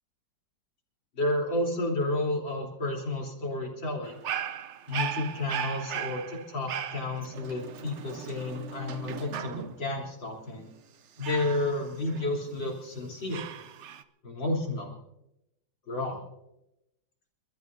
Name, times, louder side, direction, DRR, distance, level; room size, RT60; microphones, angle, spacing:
voice 1, 1.2-4.2 4.9-10.7 11.2-13.5 14.2-14.9 15.9-16.2, left 2 dB, 75° left, -1 dB, 4.3 m, -31 dB
Dog, 4.0-9.9 11.2-12.7 13.3-14.0, right 8 dB, 90° right, 0.6 m, -37 dB
29.5 x 13.5 x 2.7 m, 0.86 s
omnidirectional pair, 2.0 m